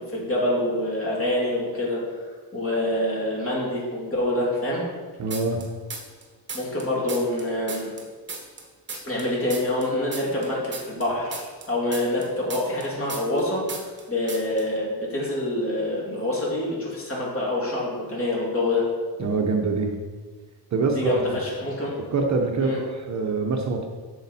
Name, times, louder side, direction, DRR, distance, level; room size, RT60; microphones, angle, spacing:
voice 1, 0.0-2.0 2.5-4.8 6.5-7.9 9.1-13.8 14.1-18.8 20.9-22.0 22.6-22.8, left 1 dB, 30° left, -4 dB, 2.5 m, -26 dB
voice 2, 5.2-5.6 19.2-19.9 20.7-21.4 22.0-23.9, right 3 dB, 40° right, 2 dB, 0.7 m, -25 dB
sound 1, 5.3-6.2 6.5-9.3 9.5-13.4 13.7-14.0 14.3-14.6, right 4 dB, 25° right, 1.1 m, -36 dB
8.5 x 6.5 x 4.1 m, 1.5 s
wide cardioid pair, 160°, 43 cm